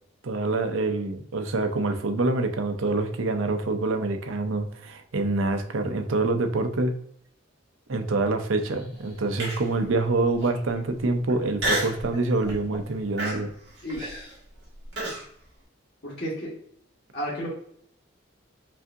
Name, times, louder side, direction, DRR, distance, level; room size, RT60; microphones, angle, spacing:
voice 1, 0.2-6.9 7.9-13.5, right 2 dB, 85° right, 6 dB, 0.6 m, -26 dB
sound 1, 8.5-11.5 11.9-12.9 13.8-14.7, right 1 dB, 25° right, 1.4 m, -47 dB
Human voice, 9.4-9.8 10.4-10.5 11.6-12.0 12.5-12.8 13.2-15.2, right 1 dB, 60° right, 1.6 m, -29 dB
voice 2, 13.8-14.3 16.0-16.5 17.1-17.5, equal, 55° left, -6 dB, 1.2 m, -32 dB
5.5 x 2.6 x 2.5 m, 0.67 s
head